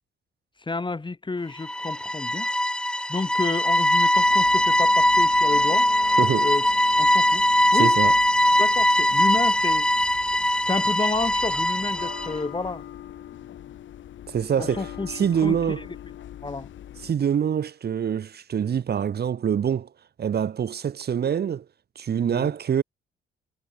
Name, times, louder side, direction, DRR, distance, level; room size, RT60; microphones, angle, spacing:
voice 1, 0.7-2.5 3.1-5.9 6.4-6.7 7.0-7.4 7.7-7.9 8.6-9.9 10.6-12.8 14.6-15.6 16.4-16.7 22.3-22.5, left 3 dB, 25° left, 6.3 m, -30 dB
sound 1, 1.6-12.4, left 1 dB, 5° left, 0.8 m, -21 dB
sound 2, 4.1-17.1, left 11 dB, 70° left, 6.2 m, -43 dB
voice 2, 6.2-6.5 7.7-8.1 14.3-15.8 17.0-19.9 20.2-21.6 21.9-22.8, right 8 dB, 55° right, 3.1 m, -25 dB
cardioid pair, 90°, 20 cm